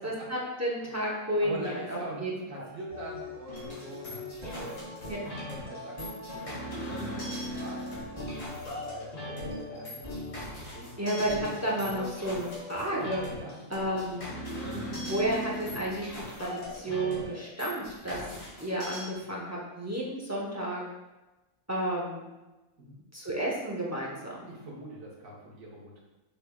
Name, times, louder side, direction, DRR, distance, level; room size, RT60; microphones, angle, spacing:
voice 1, 0.0-2.3 5.1-5.2 11.0-13.2 13.7-14.2 14.9-16.1 16.4-18.2 18.6-20.8 21.7-22.3 23.1-24.5, right 1 dB, 20° right, -4 dB, 0.4 m, -31 dB
voice 2, 1.4-5.1 5.5-6.0 6.3-7.9 8.8-9.4 9.7-10.1 10.7-11.0 11.3-11.5 13.3-13.6 22.8-23.0 24.5-26.0, right 1 dB, 70° right, -4 dB, 1.5 m, -43 dB
sound 1, 2.9-13.3, left 1 dB, 40° right, 1.8 m, -42 dB
sound 2, 3.5-19.0, equal, 65° left, 1.8 m, -40 dB
6.0 x 3.4 x 2.3 m, 1.1 s
omnidirectional pair, 1.4 m